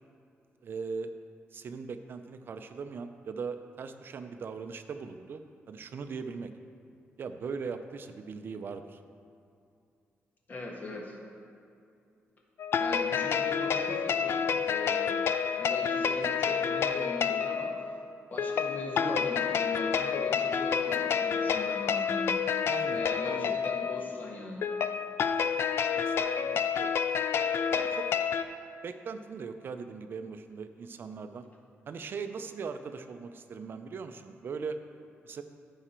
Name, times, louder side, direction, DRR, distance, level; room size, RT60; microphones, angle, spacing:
voice 1, 0.6-1.1 1.5-5.4 5.7-6.5 7.2-9.0 22.7-23.5 25.9-26.9 27.7-28.2 28.8-31.5 31.9-34.8 35.2-35.4, right 5 dB, 50° right, 8 dB, 0.4 m, -40 dB
voice 2, 10.5-11.2 12.8-17.7 18.3-22.4 22.9-24.7, left 2 dB, 40° left, -1 dB, 1.5 m, -40 dB
sound 1, 12.6-28.4, left 7 dB, 60° left, 0.4 m, -29 dB
14.5 x 5.0 x 4.4 m, 2.5 s
wide cardioid pair, 140°, 5 cm